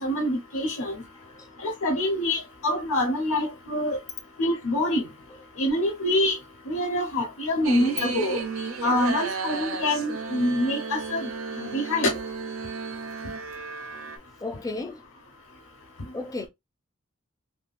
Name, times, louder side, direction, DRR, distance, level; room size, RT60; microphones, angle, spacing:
voice 1, 0.0-1.0 1.6-4.0 4.4-5.0 5.6-6.4 6.7-8.4 8.8-11.3 11.6-12.1, left 1 dB, 70° left, 0.8 m, -25 dB
sound 1, 7.6-14.2, right 4 dB, 70° right, 0.7 m, -34 dB
voice 2, 14.4-15.0 16.1-16.5, left 3 dB, 15° left, 0.4 m, -34 dB
3.6 x 2.4 x 2.4 m
head